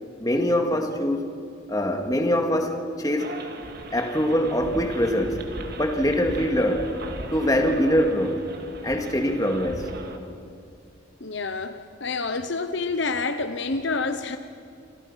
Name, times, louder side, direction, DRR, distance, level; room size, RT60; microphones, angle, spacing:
voice 1, 0.2-1.3 1.7-3.3 3.9-5.5 5.8-6.9 7.3-8.5 8.8-9.9, equal, 20° left, 4 dB, 2.2 m, -23 dB
sound 1, 3.2-10.2, right 1 dB, 50° right, 2.3 m, -38 dB
voice 2, 11.2-14.4, left 3 dB, 60° left, 9 dB, 1.0 m, -28 dB
29.0 x 27.0 x 5.7 m, 2.4 s
head